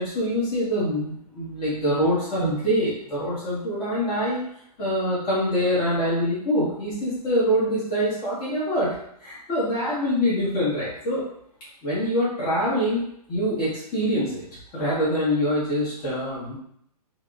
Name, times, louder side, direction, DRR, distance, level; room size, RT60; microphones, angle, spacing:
voice 1, 0.0-4.4 4.8-8.9 9.2-11.2 11.8-13.0 13.3-14.4 14.7-16.6, equal, 30° left, -10 dB, 1.2 m, -24 dB
3.3 x 2.1 x 2.5 m, 0.70 s
figure-of-eight pair, 120°, 20 cm